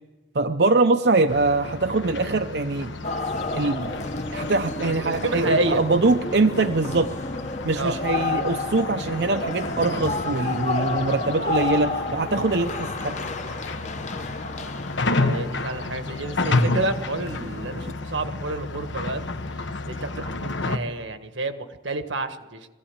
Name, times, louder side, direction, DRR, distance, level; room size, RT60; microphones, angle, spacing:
voice 1, 0.3-2.9 3.5-7.1 7.6-13.2, right 3 dB, 60° right, 6 dB, 0.7 m, -23 dB
sound 1, 1.3-20.8, left 2 dB, 75° left, 1.3 m, -31 dB
sound 2, 3.0-17.9, left 3 dB, 40° left, 1.0 m, -31 dB
voice 2, 4.8-5.8 7.7-8.0 13.8-13.9 15.1-19.2 19.7-22.7, right 2 dB, 85° right, 8 dB, 1.6 m, -29 dB
21.5 x 16.0 x 8.9 m, 1.3 s
head